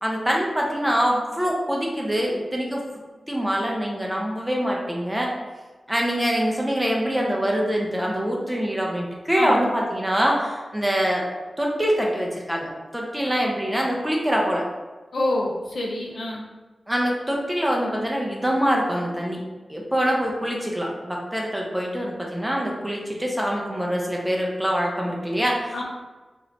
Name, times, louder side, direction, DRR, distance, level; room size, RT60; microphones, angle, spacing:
voice 1, 0.0-2.8 3.3-5.3 5.9-11.3 11.6-14.6 16.9-19.4 19.7-25.9, equal, 10° right, -2 dB, 0.6 m, -24 dB
voice 2, 9.4-9.7 15.1-16.4 25.7-25.9, left 1 dB, 85° left, -3 dB, 0.6 m, -27 dB
3.0 x 2.4 x 3.4 m, 1.3 s
wide cardioid pair, 95°, 0 cm